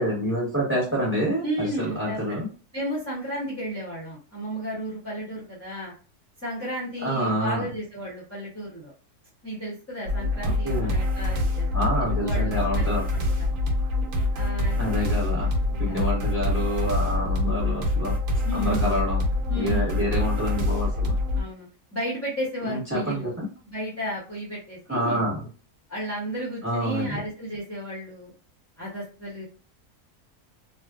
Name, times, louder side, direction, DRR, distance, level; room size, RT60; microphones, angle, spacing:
voice 1, 0.0-2.5 7.0-7.6 10.4-11.0 11.7-13.0 14.8-15.5 15.8-18.1 18.5-19.2 19.5-21.1 22.6-23.5 24.9-25.4 26.6-27.2, equal, 10° right, -6 dB, 1.1 m, -27 dB
voice 2, 1.4-2.4 2.7-5.9 6.4-8.9 9.4-12.8 13.1-13.5 14.3-14.8 15.7-16.0 18.4-19.0 19.5-20.0 21.3-23.3 23.7-25.3 25.9-28.3 28.8-29.5, equal, 15° left, -9 dB, 0.7 m, -33 dB
sound 1, 10.0-21.4, left 2 dB, 65° right, 1.0 m, -25 dB
2.6 x 2.4 x 2.4 m, 0.36 s
omnidirectional pair, 1.6 m